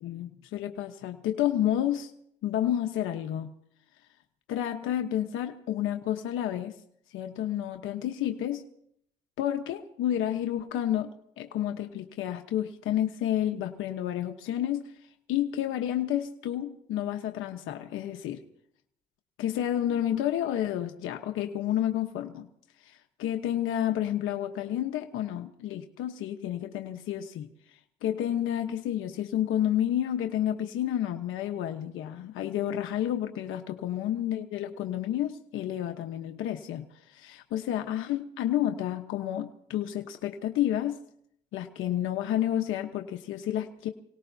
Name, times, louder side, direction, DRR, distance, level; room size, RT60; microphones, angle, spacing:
voice 1, 0.0-2.1 2.4-3.5 4.5-6.8 7.1-8.6 9.4-11.1 11.4-14.9 15.3-18.4 19.4-22.5 22.8-41.0 41.5-43.9, left 11 dB, 90° left, 5 dB, 1.1 m, -30 dB
29.0 x 18.0 x 2.8 m, 0.69 s
cardioid pair, 90°, 20 cm